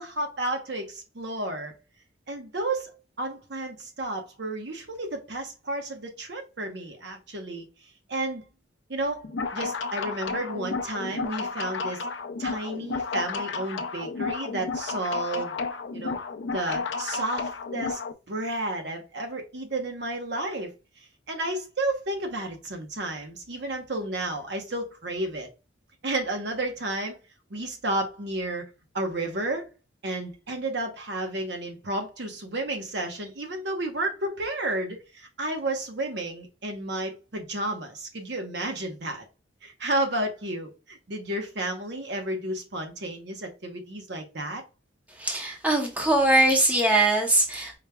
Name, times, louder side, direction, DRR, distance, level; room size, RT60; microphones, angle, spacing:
voice 1, 0.0-1.7 2.3-7.7 8.1-8.4 8.9-9.2 9.5-12.1 12.4-15.5 15.9-16.2 16.5-18.0 18.3-20.7 21.3-25.5 26.0-27.2 27.5-28.6 28.9-29.6 30.0-39.2 39.6-44.6, right 1 dB, 60° right, 1.0 m, -32 dB
sound 1, 9.2-18.1, left 4 dB, 70° left, 0.5 m, -32 dB
voice 2, 45.2-47.7, right 2 dB, 10° right, 0.7 m, -22 dB
5.0 x 3.2 x 2.2 m
head